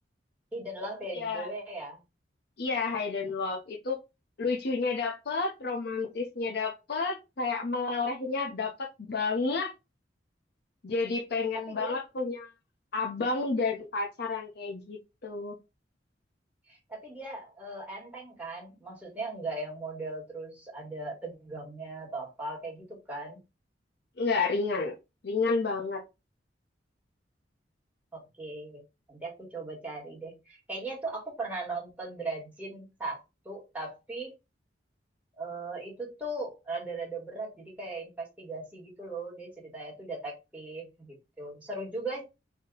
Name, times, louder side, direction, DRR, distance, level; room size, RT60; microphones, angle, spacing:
voice 1, 0.5-2.0 11.5-12.0 16.7-23.4 28.1-28.8 29.1-34.3 35.4-42.2, right 2 dB, 10° right, -3 dB, 1.7 m, -38 dB
voice 2, 1.1-1.5 2.6-4.0 4.4-9.7 10.8-12.5 12.9-15.6 24.2-25.0 25.2-26.0, left 4 dB, 65° left, 2 dB, 0.7 m, -30 dB
3.6 x 2.7 x 3.8 m, 0.25 s
head